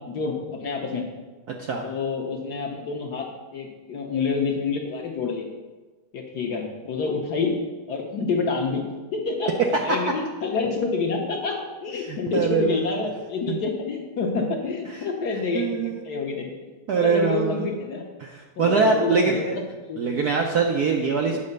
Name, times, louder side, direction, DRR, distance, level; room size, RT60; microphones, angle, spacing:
voice 1, 0.1-1.0 1.8-3.3 3.5-5.5 6.1-7.6 7.9-8.8 9.1-16.5 17.0-18.0 18.6-19.5 19.9-20.1 21.3-21.4, left 4 dB, 55° left, 1 dB, 1.4 m, -28 dB
voice 2, 12.0-12.8 13.5-13.6 15.5-16.0 16.9-17.7 18.2-19.6 20.0-21.4, right 5 dB, 65° right, 1 dB, 1.0 m, -23 dB
8.5 x 4.9 x 6.7 m, 1.2 s
omnidirectional pair, 2.4 m